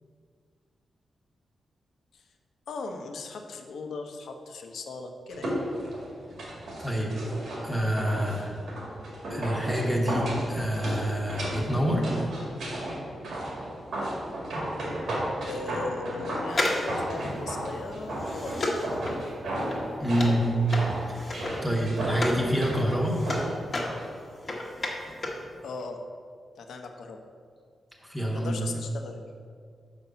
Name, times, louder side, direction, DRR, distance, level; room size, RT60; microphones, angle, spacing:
voice 1, 2.7-5.5 15.5-18.7 25.6-26.0 26.6-27.2 28.3-29.3, left 3 dB, 75° left, 4 dB, 0.8 m, -38 dB
sound 1, 5.3-24.1 24.4-24.5, right 1 dB, 80° right, 2.0 m, -34 dB
voice 2, 6.8-7.1 7.6-8.5 9.3-12.1 20.0-20.5 21.1-21.2 21.6-23.2 28.0-28.6, equal, 5° right, -2 dB, 1.1 m, -27 dB
sound 2, 16.5-22.5 22.8-25.5 25.7-25.8, left 2 dB, 35° left, 1.1 m, -33 dB
5.8 x 5.0 x 6.7 m, 2.1 s
wide cardioid pair, 155°, 0 cm